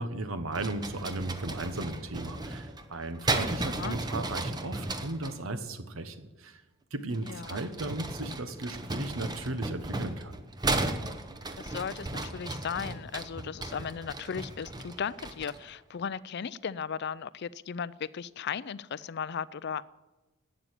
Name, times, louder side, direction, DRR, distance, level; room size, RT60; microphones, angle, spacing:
voice 1, 0.0-6.6 6.9-10.4, right 2 dB, 75° right, 10 dB, 1.3 m, -36 dB
sound 1, 0.5-5.4 7.1-15.7, right 2 dB, 20° right, 0.9 m, -35 dB
voice 2, 7.2-7.6 11.6-19.8, left 7 dB, 55° left, 18 dB, 0.4 m, -36 dB
12.0 x 8.7 x 9.8 m, 1.1 s
head